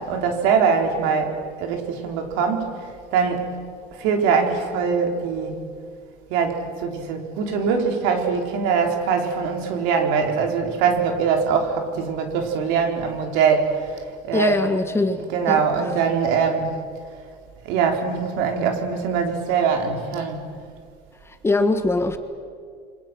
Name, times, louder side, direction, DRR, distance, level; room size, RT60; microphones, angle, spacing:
voice 1, 0.0-3.6 4.0-5.6 6.3-14.6 15.3-16.8 17.6-20.5, right 6 dB, 80° right, 3 dB, 4.0 m, -22 dB
voice 2, 14.3-15.6 21.2-22.2, left 2 dB, 15° left, 8 dB, 1.5 m, -22 dB
29.0 x 24.5 x 6.1 m, 2.1 s
cardioid pair, 135°, 19 cm